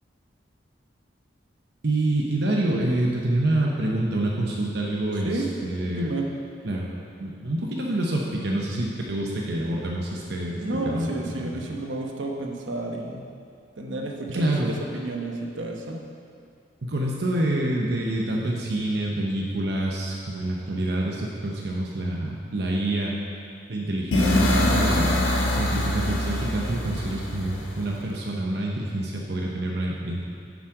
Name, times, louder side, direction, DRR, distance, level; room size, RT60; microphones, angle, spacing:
voice 1, 1.8-6.1 6.6-6.9 7.2-11.5 14.3-14.7 16.8-23.2 23.7-30.2, right 1 dB, 60° right, -2 dB, 0.8 m, -27 dB
voice 2, 6.0-6.3 10.6-13.3 13.8-16.0, right 2 dB, 90° right, 1 dB, 1.0 m, -31 dB
sound 1, 24.1-28.0, left 1 dB, 85° left, 1.2 m, -24 dB
7.3 x 7.3 x 4.8 m, 2.4 s
head